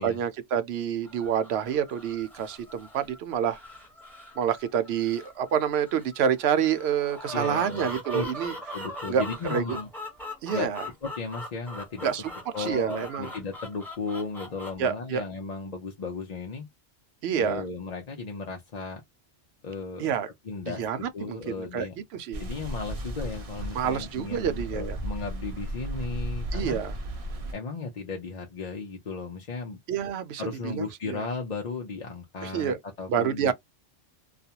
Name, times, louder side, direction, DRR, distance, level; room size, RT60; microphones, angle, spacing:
voice 1, 0.0-3.6 4.4-8.5 9.1-9.2 9.5-9.8 10.4-10.8 12.0-12.2 12.6-13.3 14.8-15.2 17.2-17.6 20.0-20.3 20.7-21.9 22.1-22.4 23.7-25.0 26.5-26.9 29.9-31.2 32.4-32.8 33.1-33.5, right 8 dB, 70° right, 0.8 m, -28 dB
sound 1, 1.0-14.7, equal, ahead, 0.9 m, -41 dB
voice 2, 7.3-8.2 8.7-9.9 10.5-10.7 11.0-12.1 12.5-16.7 17.3-19.0 19.6-20.1 20.4-21.9 22.4-26.8 27.5-29.8 30.4-33.5, left 4 dB, 45° left, 0.6 m, -35 dB
sound 2, 22.3-27.5, equal, 45° right, 0.4 m, -35 dB
2.4 x 2.2 x 2.8 m
omnidirectional pair, 1.1 m